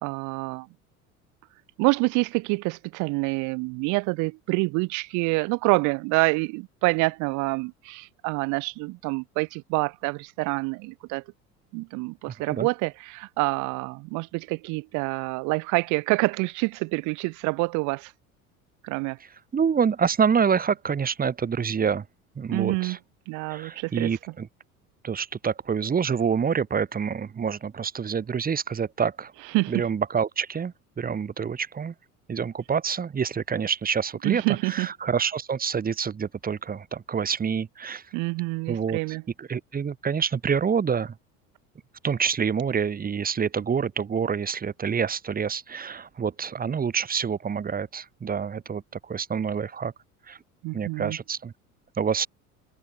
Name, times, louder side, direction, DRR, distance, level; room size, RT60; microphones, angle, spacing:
voice 1, 0.0-0.7 1.8-11.2 11.7-18.1 18.8-19.2 22.5-23.0 23.3-24.1 29.5-29.8 34.2-34.9 38.1-39.2 50.6-51.2, right 27 dB, 45° right, 0.7 m, -27 dB
voice 2, 12.3-12.7 19.5-22.0 22.3-23.0 23.5-24.5 25.0-29.3 29.7-31.9 32.3-38.0 38.7-39.0 39.4-41.1 42.0-49.9 50.3-50.4 50.7-51.5 52.0-52.3, right 6 dB, 20° right, 1.4 m, -27 dB
figure-of-eight pair, 70°, 43 cm